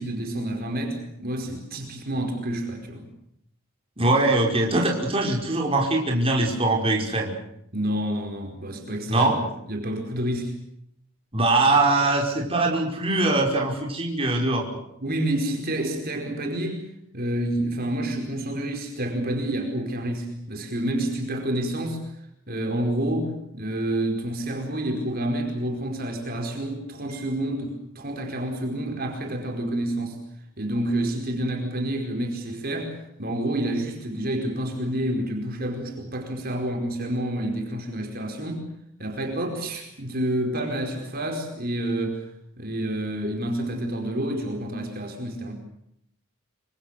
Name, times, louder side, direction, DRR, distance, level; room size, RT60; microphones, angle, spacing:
voice 1, 0.0-3.1 7.7-10.6 15.0-16.8 17.1-22.0 22.5-30.2 30.6-38.7 39.0-42.2 42.6-45.5, right 1 dB, 45° right, 3 dB, 4.8 m, -29 dB
voice 2, 4.0-7.3 9.1-9.4 11.3-14.6, right 2 dB, 25° right, 0 dB, 5.4 m, -22 dB
27.0 x 25.5 x 6.8 m, 0.76 s
head